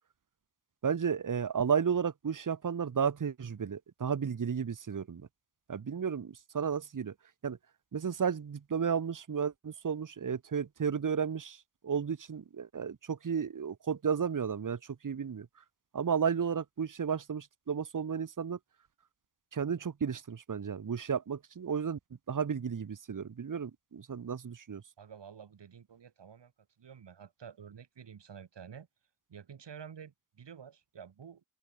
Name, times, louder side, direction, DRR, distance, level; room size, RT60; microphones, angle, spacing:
voice 1, 0.8-5.3 5.7-7.1 7.4-7.6 7.9-15.5 15.9-18.6 19.5-22.0 22.3-24.8, right 7 dB, 50° right, 1.3 m, -33 dB
voice 2, 25.0-26.5 26.8-28.9 29.3-31.4, right 7 dB, 85° right, 6.1 m, -50 dB
open air
cardioid pair, 60°, 41 cm